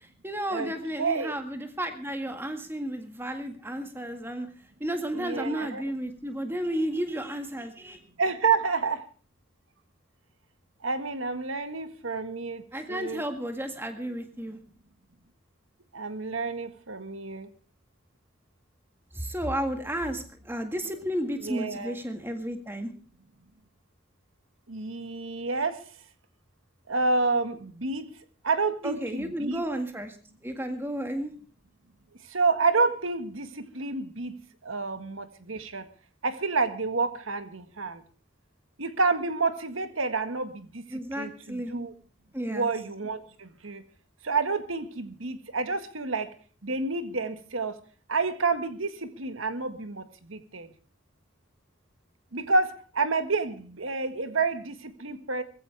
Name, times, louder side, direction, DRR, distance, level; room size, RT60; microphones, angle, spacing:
voice 1, 0.0-4.5 4.8-8.0 12.7-14.6 19.1-22.9 28.8-30.2 30.4-31.3 40.9-41.7 42.3-42.7, equal, 10° right, 6 dB, 1.9 m, -32 dB
voice 2, 1.0-1.4 5.1-5.8 8.2-9.0 10.8-12.6 12.9-13.2 15.9-17.5 21.4-22.0 24.7-25.9 26.9-28.1 28.4-29.6 32.2-35.9 36.2-38.0 38.8-41.9 42.5-43.8 44.2-46.3 46.6-47.8 48.1-50.7 52.3-55.4, right 4 dB, 90° right, 10 dB, 1.8 m, -29 dB
20.5 x 15.5 x 3.5 m, 0.39 s
head